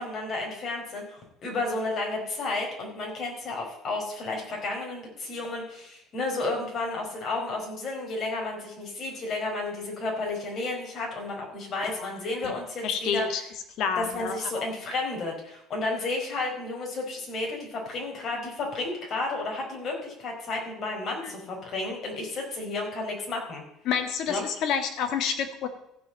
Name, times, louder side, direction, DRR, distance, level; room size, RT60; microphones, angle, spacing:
voice 1, 0.0-13.3 14.0-23.6 24.3-24.4, left 2 dB, 45° left, 0 dB, 4.7 m, -32 dB
voice 2, 12.8-13.4 13.8-14.4 21.2-21.3 23.9-25.7, left 7 dB, 60° left, 7 dB, 1.8 m, -28 dB
15.0 x 5.6 x 7.5 m, 0.80 s
cardioid pair, 125°, 0 cm